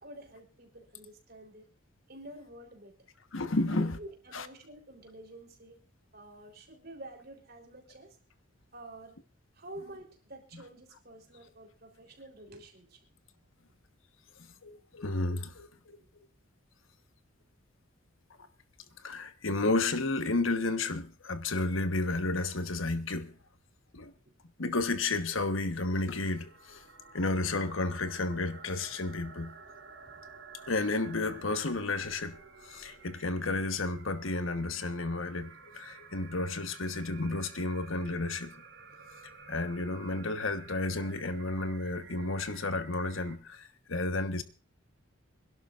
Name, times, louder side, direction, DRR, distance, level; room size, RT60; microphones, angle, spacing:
voice 1, 0.0-1.6 2.1-3.1 3.6-5.8 6.1-8.2 8.7-9.2 9.5-13.0 16.0-16.1 24.0-24.1 30.1-30.2, right 1 dB, 50° right, 3.9 m, -49 dB
voice 2, 3.3-4.0 4.3-4.5 10.5-10.6 14.4-16.0 19.0-23.4 23.9-24.1 24.6-26.8 27.1-29.5 30.7-32.4 32.6-38.5 39.5-44.4, left 2 dB, 75° left, 1.3 m, -32 dB
sound 1, 25.5-43.4, right 5 dB, 65° right, 3.9 m, -52 dB
26.0 x 11.5 x 2.5 m
head